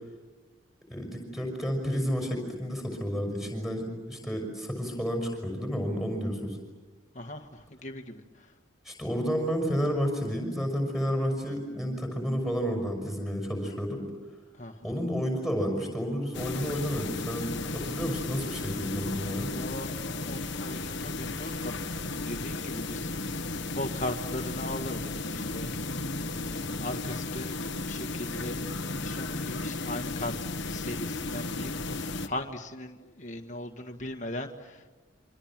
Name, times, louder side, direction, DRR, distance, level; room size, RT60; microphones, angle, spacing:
voice 1, 0.9-6.6 8.8-14.0 14.8-19.5, equal, ahead, 4 dB, 6.1 m, -31 dB
voice 2, 7.2-8.2 14.6-15.0 19.5-25.7 26.3-30.4 30.7-34.9, left 1 dB, 35° left, 4 dB, 1.8 m, -39 dB
sound 1, 16.3-32.3, left 2 dB, 55° left, 1.4 m, -34 dB
28.0 x 25.5 x 7.6 m, 1.3 s
head